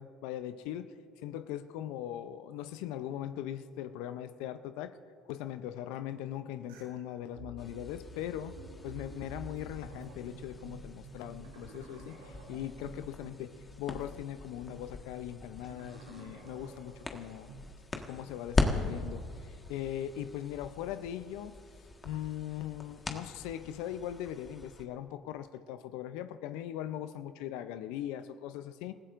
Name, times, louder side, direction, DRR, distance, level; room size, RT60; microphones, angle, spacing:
voice 1, 0.0-5.0 5.3-17.5 17.9-19.3 19.7-21.6 22.0-28.9, left 11 dB, 75° left, 11 dB, 0.5 m, -40 dB
sound 1, 6.7-6.8 7.4-17.7, right 2 dB, 85° right, 2.6 m, -50 dB
sound 2, 7.6-24.9, left 3 dB, 25° left, 1.5 m, -40 dB
29.0 x 15.0 x 2.5 m, 2.3 s
hypercardioid pair, 65°, 0 cm